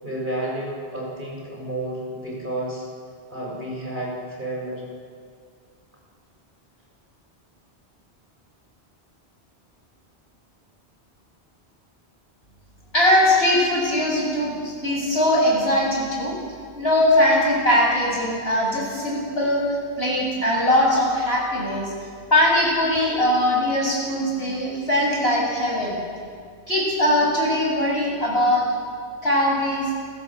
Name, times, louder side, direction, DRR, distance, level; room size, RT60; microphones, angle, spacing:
voice 1, 0.0-2.9 3.3-4.8, right 1 dB, 50° right, -3 dB, 7.3 m, -31 dB
voice 2, 12.9-16.4 16.7-21.9 22.3-26.0 26.7-28.6 29.2-29.9, left 1 dB, 70° left, -3 dB, 8.0 m, -21 dB
29.5 x 22.0 x 7.7 m, 2.2 s
omnidirectional pair, 1.1 m